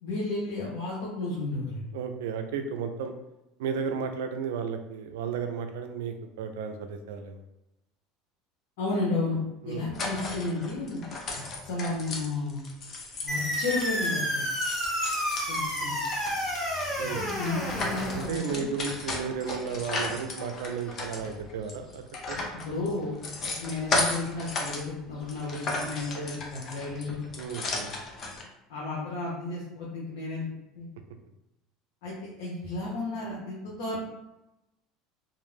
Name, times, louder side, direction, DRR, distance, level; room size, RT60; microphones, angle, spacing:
voice 1, 0.0-1.9 8.8-9.4 9.6-11.0 11.6-12.6 13.2-14.4 15.5-15.9 17.0-18.7 22.6-27.3 28.7-30.5 30.8-30.9 32.0-34.0, left 2 dB, 80° left, -6 dB, 0.7 m, -33 dB
voice 2, 1.9-3.1 3.6-7.4 9.6-9.8 17.0-17.3 18.1-22.5 27.4-27.9, right 6 dB, 90° right, 7 dB, 0.3 m, -34 dB
sound 1, 9.9-14.2 14.5-24.8 25.2-28.4, left 2 dB, 40° left, 0.5 m, -35 dB
sound 2, 13.3-18.3, equal, 15° left, 1.0 m, -30 dB
2.4 x 2.0 x 3.2 m, 0.91 s
supercardioid pair, 115°, 0 cm